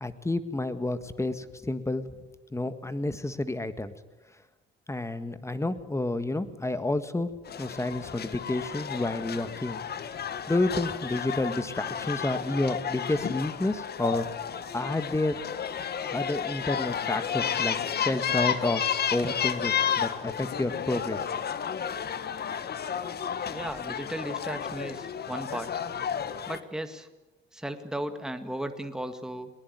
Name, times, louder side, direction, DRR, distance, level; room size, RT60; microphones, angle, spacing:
voice 1, 0.0-2.0 2.5-3.9 4.9-7.3 7.6-9.8 10.5-14.3 14.7-15.4 16.1-18.8 19.1-21.3, left 2 dB, 15° left, 11 dB, 1.8 m, -30 dB
sound 1, 7.4-26.6, left 8 dB, 55° left, 1.6 m, -32 dB
voice 2, 23.5-25.7 26.5-27.1 27.5-29.5, right 1 dB, 5° right, 7 dB, 2.0 m, -35 dB
22.0 x 19.5 x 9.5 m, 1.1 s
cardioid pair, 90°, 20 cm